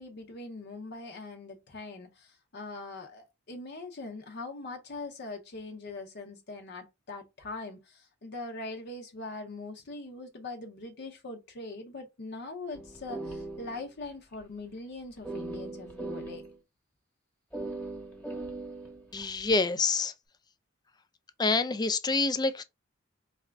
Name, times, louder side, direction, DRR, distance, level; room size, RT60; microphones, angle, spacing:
voice 1, 0.0-16.4, left 3 dB, 55° left, 0.7 m, -42 dB
sound 1, 12.7-14.1 14.3-14.4 15.2-16.6 17.5-19.5, right 2 dB, 5° left, 1.2 m, -39 dB
voice 2, 19.1-20.1 21.4-22.6, left 3 dB, 20° left, 0.4 m, -27 dB
4.2 x 2.4 x 3.3 m
head